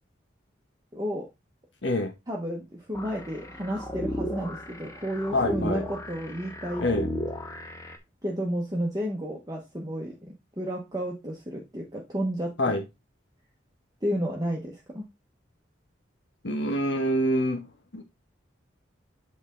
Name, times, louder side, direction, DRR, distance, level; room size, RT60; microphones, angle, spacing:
voice 1, 0.9-1.3 2.3-6.9 8.2-12.7 14.0-15.1, equal, 20° right, 1.1 m, -32 dB
voice 2, 1.8-2.1 5.3-5.8 6.8-7.1 12.6-12.8 16.4-17.7 17.9-18.0, left 1 dB, 70° left, 1.1 m, -26 dB
sound 1, 2.9-8.0, equal, 15° left, 0.9 m, -35 dB
8.0 x 4.2 x 3.7 m
head